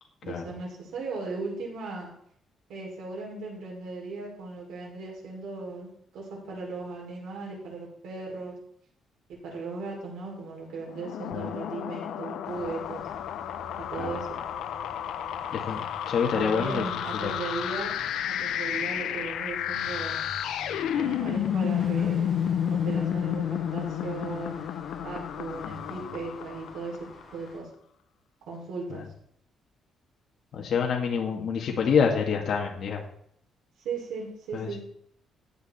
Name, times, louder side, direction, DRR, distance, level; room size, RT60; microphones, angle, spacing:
voice 1, 0.2-2.1 2.7-8.5 9.3-13.0 13.9-14.4 16.3-17.9 18.3-20.2 20.9-22.4 22.7-24.6 25.0-27.0 27.3-27.7 28.5-29.0 33.8-34.8, right 3 dB, 85° right, -2 dB, 5.9 m, -37 dB
sound 1, 10.9-27.2, left 9 dB, 80° left, 0.8 m, -31 dB
sound 2, 12.4-27.6, left 1 dB, ahead, 6.4 m, -48 dB
voice 2, 15.5-16.8 17.1-17.3 25.7-26.1 28.9-29.0 30.5-33.0 34.5-34.7, left 6 dB, 50° left, 0 dB, 1.9 m, -27 dB
14.5 x 8.9 x 4.3 m, 0.67 s
cardioid pair, 160°, 0 cm